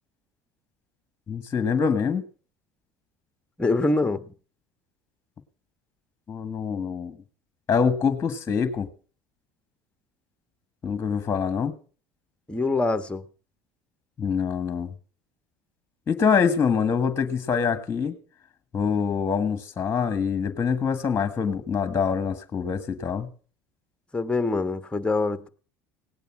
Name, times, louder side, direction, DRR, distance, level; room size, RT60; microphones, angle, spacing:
voice 1, 1.3-2.2 6.3-7.2 7.7-8.9 10.8-11.7 14.2-14.9 16.1-18.1 18.7-23.3, left 6 dB, 30° left, 13 dB, 1.6 m, -25 dB
voice 2, 3.6-4.2 12.5-13.2 24.1-25.5, left 3 dB, 10° left, 11 dB, 1.3 m, -24 dB
18.0 x 9.0 x 6.0 m, 0.41 s
supercardioid pair, 85°, 9 cm